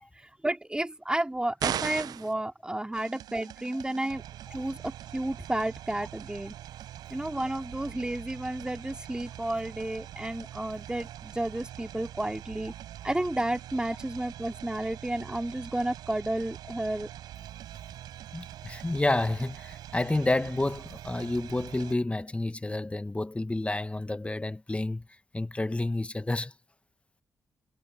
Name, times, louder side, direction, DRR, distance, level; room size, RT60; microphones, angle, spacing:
voice 1, 0.1-4.2 4.5-6.6 7.1-12.7 13.0-17.1, right 1 dB, 10° right, 2.8 m, -32 dB
sound 1, 1.6-2.3, right 9 dB, 70° right, 0.6 m, -31 dB
sound 2, 2.9-22.0, right 12 dB, 90° right, 6.9 m, -44 dB
voice 2, 18.3-25.1 25.3-26.5, left 2 dB, 15° left, 1.3 m, -30 dB
supercardioid pair, 55°, 7 cm